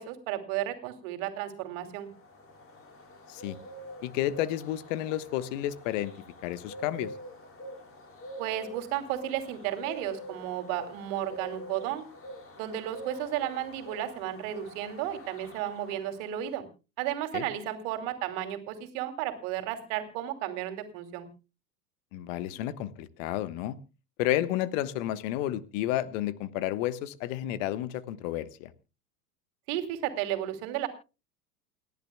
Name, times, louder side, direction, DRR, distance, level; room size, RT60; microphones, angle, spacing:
voice 1, 0.0-2.1 8.4-12.0 12.6-16.7 17.0-21.3 29.7-30.9, right 12 dB, 50° right, 8 dB, 2.9 m, -33 dB
sound 1, 1.8-16.4, equal, 25° left, 4.7 m, -46 dB
voice 2, 4.0-6.1 6.4-7.1 17.3-17.5 22.1-23.8 24.2-28.7, left 13 dB, 50° left, 16 dB, 1.3 m, -31 dB
29.0 x 11.0 x 2.3 m, 0.31 s
figure-of-eight pair, 85°, 49 cm